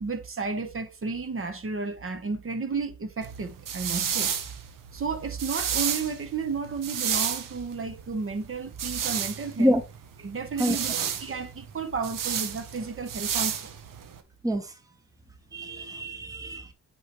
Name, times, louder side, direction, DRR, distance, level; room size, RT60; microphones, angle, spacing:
voice 1, 0.0-4.3 4.9-9.8 10.2-13.7, right 4 dB, 40° right, 1.0 m, -32 dB
sound 1, 3.2-14.2, right 8 dB, 85° right, 0.9 m, -32 dB
voice 2, 15.5-16.7, equal, 10° right, 0.9 m, -26 dB
8.3 x 4.6 x 3.0 m
cardioid pair, 85°, 32 cm